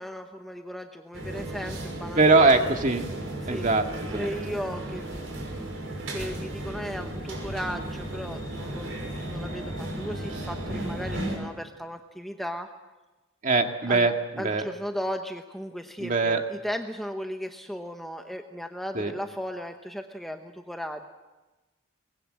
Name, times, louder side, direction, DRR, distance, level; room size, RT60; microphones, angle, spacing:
voice 1, 0.0-2.6 3.4-3.7 4.1-5.3 6.1-12.7 13.9-14.0 14.4-21.1, equal, ahead, 5 dB, 0.9 m, -36 dB
sound 1, 1.1-11.4, right 1 dB, 80° right, 6.3 m, -35 dB
voice 2, 2.1-3.1 3.5-4.3 13.4-14.6 16.0-16.4 18.9-19.1, right 3 dB, 40° right, 4 dB, 1.9 m, -22 dB
23.5 x 20.5 x 7.6 m, 1.1 s
head